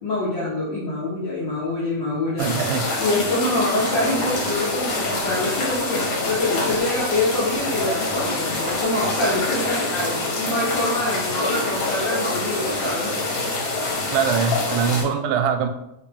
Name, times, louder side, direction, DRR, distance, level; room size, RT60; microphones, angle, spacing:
voice 1, 0.0-2.5 3.0-13.2, left 2 dB, 75° left, -8 dB, 1.0 m, -25 dB
sound 1, 2.4-15.0, left 2 dB, 60° left, 1.4 m, -26 dB
voice 2, 2.4-2.9 14.1-15.7, right 7 dB, 85° right, 6 dB, 2.0 m, -22 dB
sound 2, 3.8-9.9, left 1 dB, 20° left, 0.4 m, -39 dB
4.9 x 2.8 x 3.5 m, 0.85 s
omnidirectional pair, 3.6 m